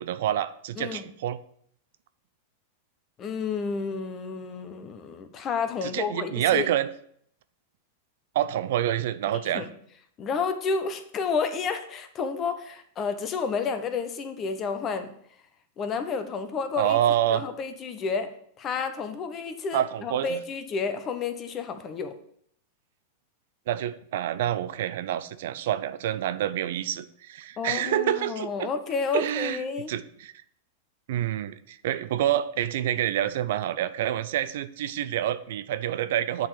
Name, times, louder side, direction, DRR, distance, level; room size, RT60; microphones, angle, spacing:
voice 1, 0.0-1.4 5.8-6.9 8.3-9.7 16.7-17.4 19.7-20.4 23.7-28.7 29.1-29.6 29.9-30.3 31.1-36.5, right 11 dB, 70° right, 13 dB, 0.4 m, -27 dB
voice 2, 0.8-1.1 3.2-6.7 9.5-9.7 10.2-15.1 15.8-17.0 17.3-22.1 27.6-29.9, left 5 dB, 35° left, 9 dB, 1.0 m, -30 dB
7.6 x 4.0 x 6.6 m, 0.66 s
hypercardioid pair, 115°, 0 cm